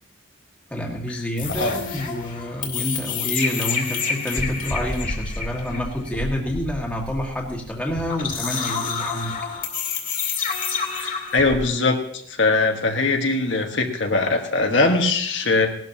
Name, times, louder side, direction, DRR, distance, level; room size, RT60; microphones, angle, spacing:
voice 1, 0.7-9.3, left 1 dB, 5° left, -1 dB, 1.8 m, -28 dB
sound 1, 1.4-11.6, left 5 dB, 45° left, 2.2 m, -28 dB
voice 2, 10.9-12.0 12.4-15.7, left 3 dB, 70° left, 2 dB, 1.5 m, -21 dB
18.5 x 12.0 x 2.9 m, 0.66 s
head